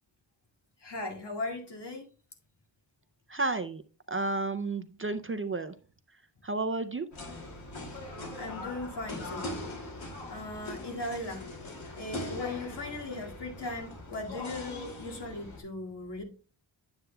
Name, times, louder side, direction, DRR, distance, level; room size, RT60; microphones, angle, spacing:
voice 1, 0.8-2.0 8.3-9.6 10.3-11.5 11.9-16.2, left 2 dB, 60° left, 1 dB, 2.2 m, -38 dB
voice 2, 3.3-3.8 4.1-5.8 6.4-7.1, right 3 dB, 30° right, 10 dB, 0.4 m, -31 dB
sound 1, 7.1-15.6, left 2 dB, 85° left, 2.6 m, -41 dB
9.6 x 7.7 x 2.2 m, 0.36 s
wide cardioid pair, 120°, 45 cm